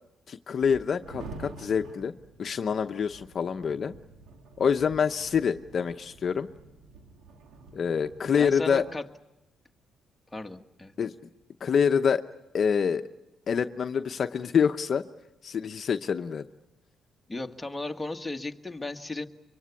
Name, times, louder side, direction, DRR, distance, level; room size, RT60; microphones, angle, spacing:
voice 1, 0.3-2.1 2.4-3.9 4.6-6.5 7.7-8.8 11.0-11.1 11.6-12.2 12.5-13.0 13.5-15.0 15.4-16.4, left 6 dB, 50° left, 8 dB, 0.8 m, -26 dB
sound 1, 0.6-9.0, right 3 dB, 75° right, 2.9 m, -48 dB
voice 2, 8.4-9.1 10.3-10.9 17.3-19.3, left 2 dB, 10° left, 4 dB, 1.7 m, -35 dB
24.0 x 24.0 x 8.4 m, 0.91 s
cardioid pair, 90°, 0 cm